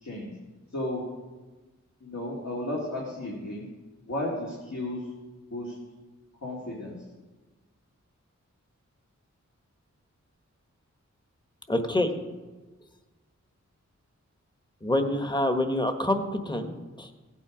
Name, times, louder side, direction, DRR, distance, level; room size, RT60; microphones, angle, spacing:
voice 1, 2.0-3.7 4.1-5.1 5.5-5.7 6.4-7.0, left 1 dB, 60° left, -4 dB, 2.5 m, -33 dB
voice 2, 11.7-12.1 14.8-17.1, left 1 dB, 15° left, 6 dB, 1.3 m, -27 dB
17.0 x 8.9 x 5.0 m, 1.2 s
wide cardioid pair, 90°, 30 cm